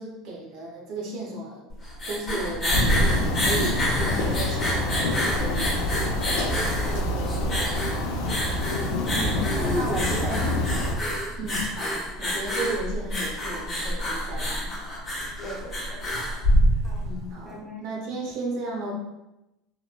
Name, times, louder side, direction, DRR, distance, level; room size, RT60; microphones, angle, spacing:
voice 1, 0.0-1.7 2.1-5.8 9.1-10.5 11.4-14.7 17.0-19.0, right 1 dB, 50° right, -1 dB, 0.6 m, -34 dB
sound 1, 1.7-17.2, equal, 20° left, 0.8 m, -27 dB
sound 2, 2.7-10.9, left 2 dB, 70° left, 0.4 m, -27 dB
voice 2, 6.8-8.0 9.3-10.4 15.4-16.0 16.8-17.0 17.4-17.8, right 1 dB, 15° right, -3 dB, 0.5 m, -39 dB
3.0 x 2.1 x 2.2 m, 0.93 s
cardioid pair, 160°, 0 cm